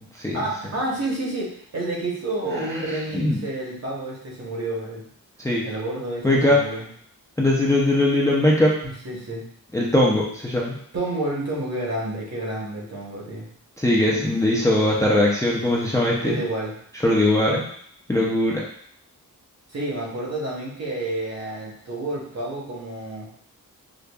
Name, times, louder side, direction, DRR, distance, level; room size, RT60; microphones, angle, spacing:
voice 1, 0.3-5.0 5.6-6.8 8.8-9.4 10.9-13.5 16.2-16.7 19.7-23.3, right 2 dB, 50° right, -3 dB, 1.0 m, -29 dB
voice 2, 6.2-6.6 7.4-8.7 9.7-10.7 13.8-16.4 17.0-17.6 18.1-18.6, left 1 dB, 10° left, -4 dB, 0.4 m, -20 dB
5.0 x 2.2 x 2.3 m, 0.66 s
wide cardioid pair, 130°, 34 cm